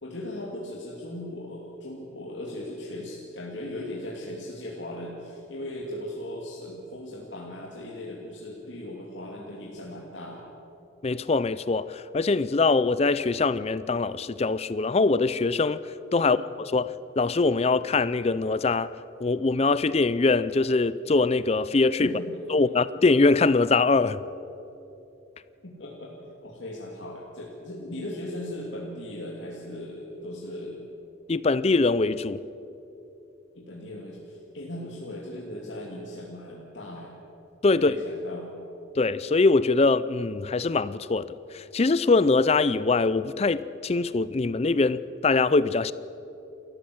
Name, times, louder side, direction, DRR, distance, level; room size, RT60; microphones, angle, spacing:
voice 1, 0.0-10.4 16.2-16.4 22.0-22.3 25.6-26.1 26.4-30.9 33.5-37.1 37.7-38.5, left 1 dB, 60° left, 2.6 m, -38 dB
voice 2, 11.0-15.8 16.1-16.4 16.7-18.9 19.2-22.1 22.5-24.2 31.3-32.4 37.6-37.9 39.0-45.9, left 3 dB, 30° left, 0.4 m, -23 dB
28.5 x 14.5 x 7.8 m
head